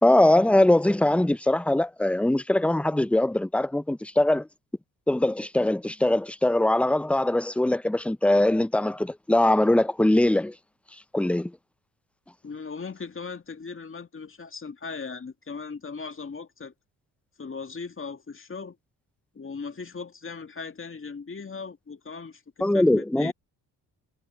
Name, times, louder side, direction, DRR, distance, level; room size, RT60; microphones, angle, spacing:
voice 1, 0.0-4.5 5.1-10.5 11.1-11.5 22.6-23.3, left 1 dB, 5° left, 0.7 m, -22 dB
voice 2, 12.4-16.7 17.4-18.8 19.3-23.3, left 5 dB, 30° left, 2.3 m, -38 dB
hypercardioid pair, 50°, 40 cm